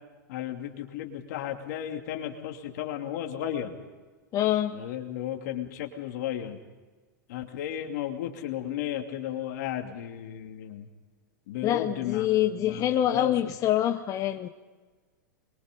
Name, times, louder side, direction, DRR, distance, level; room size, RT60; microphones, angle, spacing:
voice 1, 0.3-3.7 4.7-6.6 7.3-10.9 11.5-13.3, left 11 dB, 65° left, 3 dB, 2.9 m, -34 dB
voice 2, 4.3-4.8 11.6-14.5, left 12 dB, 35° left, 7 dB, 1.0 m, -25 dB
26.0 x 23.0 x 5.4 m, 1.3 s
hypercardioid pair, 115°, 10 cm